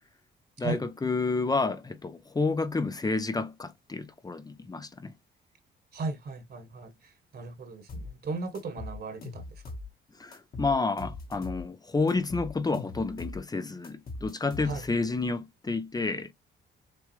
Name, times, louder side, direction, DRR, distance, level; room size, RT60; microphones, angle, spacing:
voice 1, 0.6-5.1 10.2-16.3, left 3 dB, 20° left, 0.7 m, -30 dB
voice 2, 5.9-9.5 14.6-14.8, right 3 dB, 55° right, 1.7 m, -36 dB
sound 1, 7.9-8.1 8.5-9.9 10.3-11.7 12.1-13.4 13.8-15.0, left 2 dB, 50° left, 1.7 m, -40 dB
6.8 x 2.4 x 3.3 m
cardioid pair, 90°, 20 cm